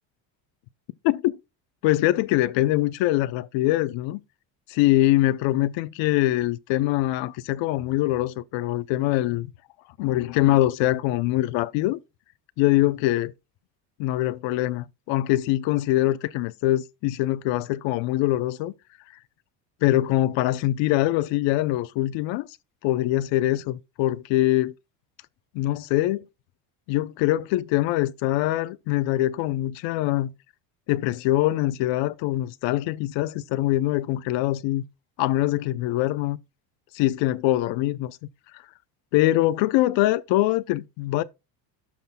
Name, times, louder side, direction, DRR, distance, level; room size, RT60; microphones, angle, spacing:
voice 1, 1.0-1.4 1.8-4.2 4.7-9.5 10.0-12.0 12.6-13.3 14.0-18.7 19.8-22.5 22.8-24.7 25.5-26.3 26.9-30.3 30.9-34.8 35.2-36.4 36.9-38.2 38.5-38.6 39.1-41.2, left 15 dB, 70° left, 0.7 m, -23 dB
12.5 x 6.0 x 2.2 m
cardioid pair, 145°, 47 cm